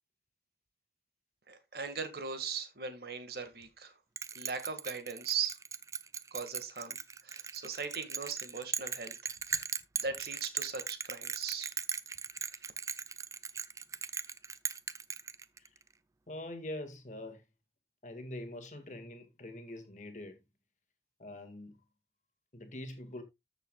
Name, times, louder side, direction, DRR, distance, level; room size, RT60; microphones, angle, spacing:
voice 1, 1.5-3.9 4.4-5.6 6.3-9.7 10.0-11.7 12.5-12.6, right 6 dB, 60° right, 1.7 m, -39 dB
Bell, 4.2-15.8, right 6 dB, 20° right, 0.4 m, -38 dB
voice 2, 16.3-17.4 18.0-20.4 21.2-21.8 22.5-23.2, left 1 dB, 45° left, 1.8 m, -44 dB
13.5 x 7.1 x 2.3 m
head